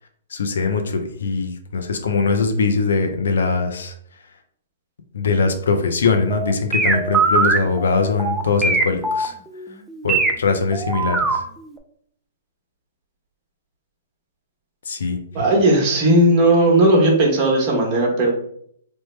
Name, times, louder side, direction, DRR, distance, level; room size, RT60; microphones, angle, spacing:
voice 1, 0.3-3.9 5.1-9.3 10.0-11.4 14.9-15.2, left 4 dB, 85° left, 6 dB, 0.5 m, -21 dB
sound 1, 6.3-10.3 10.7-11.4 11.8-11.9, right 3 dB, 10° right, 0.3 m, -20 dB
voice 2, 15.3-18.3, right 1 dB, 35° right, -1 dB, 1.0 m, -16 dB
3.2 x 2.1 x 3.1 m, 0.65 s
hypercardioid pair, 150°, 0 cm